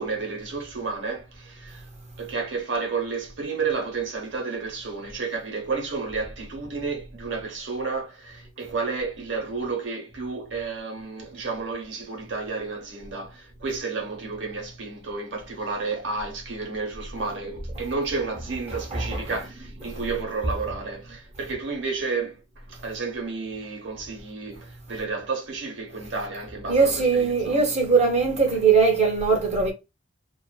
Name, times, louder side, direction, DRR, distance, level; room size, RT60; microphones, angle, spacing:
voice 1, 0.0-1.9 2.2-22.4 22.7-27.6, right 4 dB, 65° right, 0.8 m, -31 dB
voice 2, 18.7-19.4 26.7-29.7, right 5 dB, 35° right, 0.7 m, -21 dB
2.4 x 2.4 x 2.2 m
head